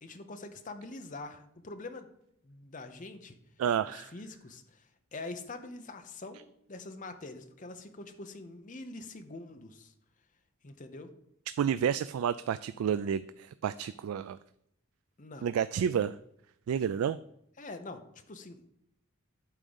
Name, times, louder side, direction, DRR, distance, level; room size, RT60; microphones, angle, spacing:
voice 1, 0.0-2.1 2.4-3.3 3.8-6.4 6.7-9.9 10.6-11.1 15.2-15.5 17.6-18.7, left 2 dB, 35° left, 7 dB, 0.8 m, -44 dB
voice 2, 3.6-4.1 11.6-14.4 15.4-16.2 16.7-17.2, right 8 dB, 85° right, 14 dB, 0.3 m, -30 dB
8.9 x 3.7 x 6.9 m, 0.76 s
head